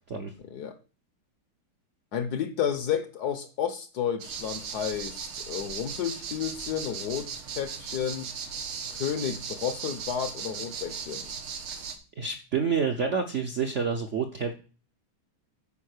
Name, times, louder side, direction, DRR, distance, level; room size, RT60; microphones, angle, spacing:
voice 1, 0.5-0.8 2.1-8.3 8.9-11.3, left 8 dB, 65° left, 1.1 m, -31 dB
sound 1, 4.2-12.0, right 6 dB, 85° right, 2.1 m, -37 dB
voice 2, 12.2-14.5, right 6 dB, 60° right, 0.7 m, -28 dB
9.0 x 5.0 x 6.5 m
omnidirectional pair, 2.3 m